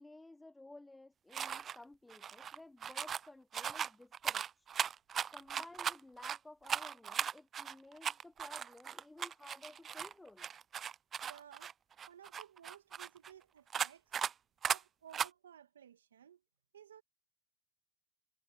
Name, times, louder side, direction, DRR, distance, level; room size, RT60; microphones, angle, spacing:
voice 1, 0.0-4.7 5.3-10.5, left 2 dB, 10° left, 0.8 m, -55 dB
sound 1, 1.3-1.8 2.1-3.3 3.5-6.4 6.6-10.1 10.4-13.3 13.7-14.3 14.6-14.8 15.1-15.3, right 8 dB, 30° right, 0.4 m, -38 dB
voice 2, 11.2-11.7 12.1-14.1 14.7-16.4 16.7-17.0, right 9 dB, 85° right, 1.9 m, -57 dB
hypercardioid pair, 90°, 0 cm